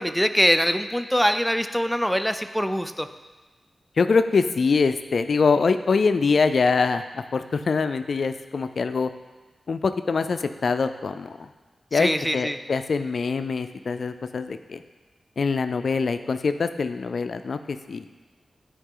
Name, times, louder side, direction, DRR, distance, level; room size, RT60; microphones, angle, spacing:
voice 1, 0.0-3.1 11.9-12.6, equal, ahead, 9 dB, 0.4 m, -23 dB
voice 2, 4.0-9.1 9.7-11.5 11.9-14.8 15.4-18.1, left 4 dB, 70° left, 10 dB, 0.3 m, -24 dB
9.8 x 4.8 x 3.8 m, 1.2 s
cardioid pair, 45°, 0 cm